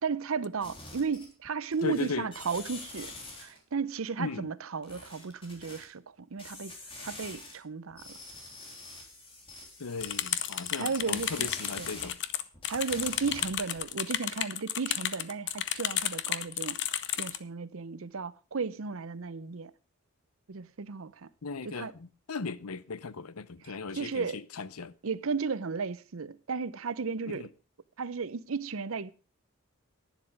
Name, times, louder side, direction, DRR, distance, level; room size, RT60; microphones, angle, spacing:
voice 1, 0.0-3.1 3.4-6.7 7.0-8.2 10.8-11.5 11.8-11.9 12.7-16.8 17.1-19.7 20.5-21.3 21.6-21.9 23.6-24.4 25.0-27.5 28.0-29.1, right 5 dB, 65° right, 0.7 m, -34 dB
sound 1, 0.6-1.5 1.7-3.6 4.8-5.8 6.4-7.5 7.9-12.1 12.5-13.8, left 2 dB, 25° left, 3.5 m, -46 dB
voice 2, 1.8-2.3 4.2-4.5 9.8-12.2 21.4-21.9 22.3-24.3 24.6-24.9 27.3-27.5, left 4 dB, 85° left, 0.7 m, -36 dB
sound 2, 10.0-17.4, left 11 dB, 55° left, 0.8 m, -32 dB
11.5 x 10.0 x 5.2 m
head